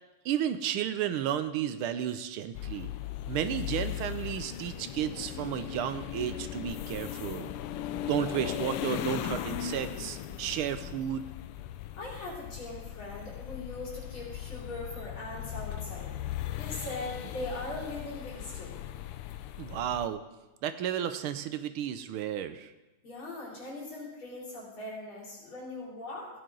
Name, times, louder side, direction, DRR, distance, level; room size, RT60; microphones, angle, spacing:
voice 1, 0.2-2.9 3.3-7.5 8.1-11.2 19.6-20.2 20.6-22.7, right 10 dB, 80° right, 11 dB, 1.5 m, -32 dB
sound 1, 2.5-20.1, left 11 dB, 85° left, 1.5 m, -38 dB
voice 2, 12.0-16.1 16.6-18.8 23.0-26.3, left 2 dB, 65° left, -4 dB, 4.2 m, -40 dB
15.5 x 9.5 x 3.8 m, 1.0 s
omnidirectional pair, 2.4 m